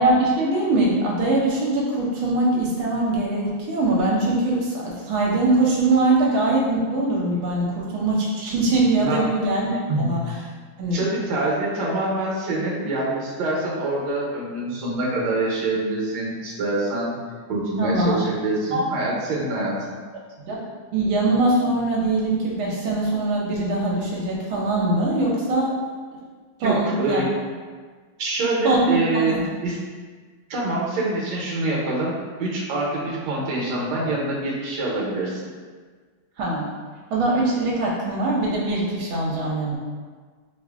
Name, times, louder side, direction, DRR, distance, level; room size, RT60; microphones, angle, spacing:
voice 1, 0.0-10.3 10.8-11.0 17.8-18.2 18.7-18.9 20.5-20.6 20.9-25.8 26.6-27.2 28.6-29.4 36.4-36.7 37.1-39.8, right 2 dB, 80° right, -4 dB, 1.4 m, -22 dB
voice 2, 10.9-17.2 17.5-20.0 26.6-27.3 28.2-29.4 29.6-29.8 30.5-35.5, right 2 dB, 65° right, -4 dB, 1.2 m, -25 dB
4.9 x 2.5 x 2.3 m, 1.5 s
omnidirectional pair, 2.2 m